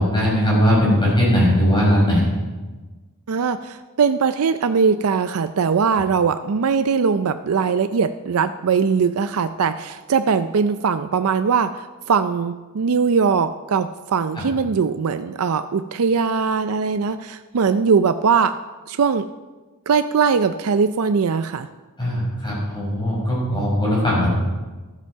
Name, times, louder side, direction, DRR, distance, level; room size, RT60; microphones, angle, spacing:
voice 1, 0.0-2.3 14.4-14.5 22.0-24.3, equal, 20° left, -5 dB, 5.5 m, -19 dB
voice 2, 3.3-18.6 18.9-19.3 19.9-21.7, right 5 dB, 70° right, 10 dB, 0.5 m, -20 dB
13.0 x 13.0 x 4.6 m, 1.2 s
head